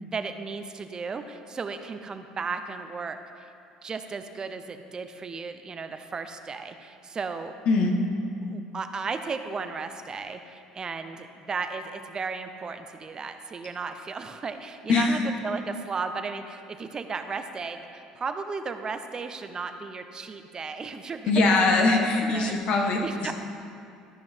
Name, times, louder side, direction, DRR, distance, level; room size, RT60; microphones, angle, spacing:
voice 1, 0.0-3.5 3.8-7.5 8.5-22.1 22.3-22.6 23.0-23.3, right 4 dB, 30° right, 8 dB, 0.7 m, -35 dB
voice 2, 7.7-8.0 14.9-15.2 21.3-23.3, left 3 dB, 60° left, 2 dB, 1.3 m, -22 dB
13.5 x 5.7 x 4.5 m, 2.5 s
supercardioid pair, 85°, 2 cm